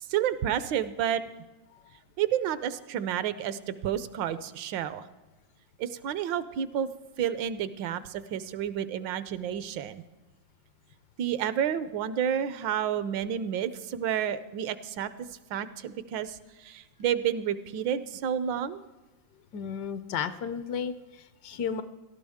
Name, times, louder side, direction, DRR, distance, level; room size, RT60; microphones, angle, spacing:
voice 1, 0.1-1.2 2.2-5.0 5.8-6.9 7.2-10.0 11.2-18.8, right 9 dB, 80° right, 14 dB, 1.3 m, -30 dB
voice 2, 19.5-21.8, left 7 dB, 70° left, 12 dB, 1.1 m, -33 dB
17.5 x 13.0 x 3.5 m, 1.2 s
omnidirectional pair, 2.0 m